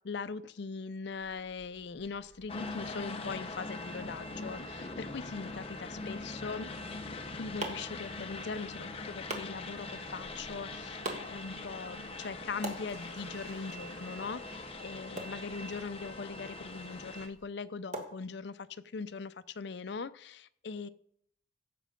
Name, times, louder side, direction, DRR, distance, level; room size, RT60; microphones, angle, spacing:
voice 1, 0.0-6.7 7.4-20.9, left 4 dB, 55° left, 13 dB, 0.5 m, -41 dB
Fowl, 1.1-17.4, right 1 dB, 80° right, 6.3 m, -60 dB
sound 1, 2.5-17.3, left 2 dB, 30° left, 0.8 m, -42 dB
sound 2, 6.9-18.9, right 2 dB, 35° right, 1.5 m, -47 dB
16.0 x 7.6 x 5.1 m, 0.71 s
head